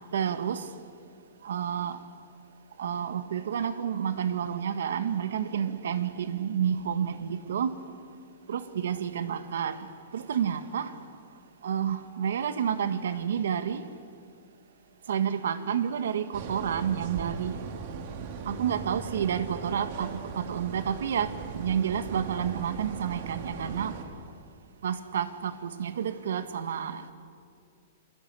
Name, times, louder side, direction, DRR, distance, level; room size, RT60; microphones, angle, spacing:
voice 1, 0.1-0.6 1.4-2.0 2.8-7.8 8.5-9.7 10.1-10.9 11.6-13.8 15.1-17.6 18.5-24.0 24.8-27.1, right 8 dB, 85° right, 11 dB, 1.7 m, -30 dB
sound 1, 16.3-24.0, right 5 dB, 50° right, 2.9 m, -39 dB
27.5 x 23.0 x 8.4 m, 2.3 s
hypercardioid pair, 155°, 0 cm